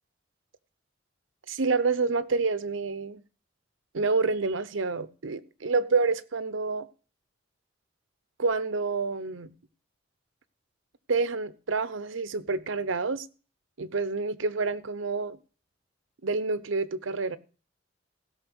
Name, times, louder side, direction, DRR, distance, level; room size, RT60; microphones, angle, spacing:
voice 1, 1.5-3.2 3.9-6.9 8.4-9.5 11.1-13.2 13.8-15.4 16.2-17.4, right 4 dB, 90° right, 0.8 m, -28 dB
16.0 x 5.8 x 6.2 m
head